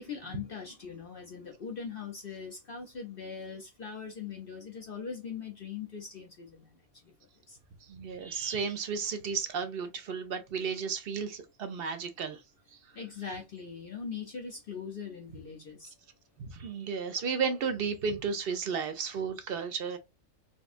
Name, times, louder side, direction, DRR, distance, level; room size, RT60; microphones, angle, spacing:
voice 1, 0.0-6.7 7.0-7.1 7.5-7.6 12.9-15.9, left 6 dB, 50° left, 0.8 m, -41 dB
voice 2, 7.9-12.4 16.4-20.0, right 6 dB, 55° right, 0.7 m, -33 dB
4.3 x 2.2 x 2.5 m
omnidirectional pair, 1.4 m